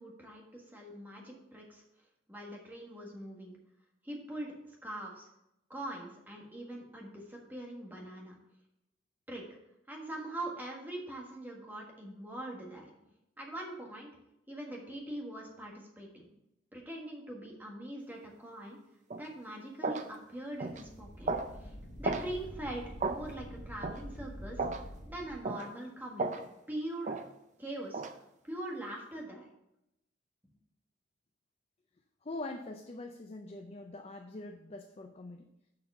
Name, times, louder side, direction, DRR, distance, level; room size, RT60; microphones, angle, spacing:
voice 1, 0.0-1.8 2.3-3.6 4.0-5.3 5.7-8.4 9.3-9.4 9.9-12.9 13.4-14.1 14.5-16.3 16.7-18.8 19.2-21.3 21.6-24.6 25.1-26.3 26.7-27.2 27.6-29.5, right 1 dB, 10° right, -1 dB, 1.5 m, -42 dB
sound 1, 19.1-19.3 19.8-20.1 20.6-20.8 21.3-21.5 22.0-22.3 23.0-23.2 23.8-24.0 24.6-24.8 25.4-25.7 26.2-26.4 27.0-27.2 27.9-28.1, right 3 dB, 40° right, 0.5 m, -34 dB
sound 2, 20.6-25.4, equal, 60° left, 1.4 m, -47 dB
voice 2, 32.2-35.5, left 2 dB, 30° left, 4 dB, 0.5 m, -43 dB
6.6 x 5.6 x 5.5 m, 0.86 s
head